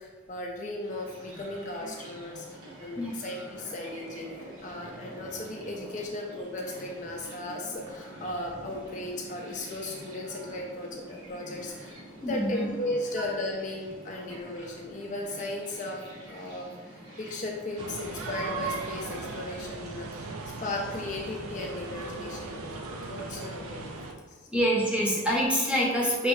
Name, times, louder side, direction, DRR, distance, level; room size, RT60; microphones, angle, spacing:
voice 1, 0.0-16.0 16.3-20.3 20.6-24.4, left 2 dB, 35° left, 0 dB, 0.3 m, -36 dB
sound 1, 0.7-19.7, right 1 dB, 65° right, 1.0 m, -47 dB
voice 2, 12.2-12.7 13.2-13.3 24.5-26.3, equal, 5° right, -4 dB, 0.7 m, -26 dB
sound 2, 17.8-24.1, right 3 dB, 90° right, 0.5 m, -38 dB
5.3 x 2.8 x 3.0 m, 1.4 s
head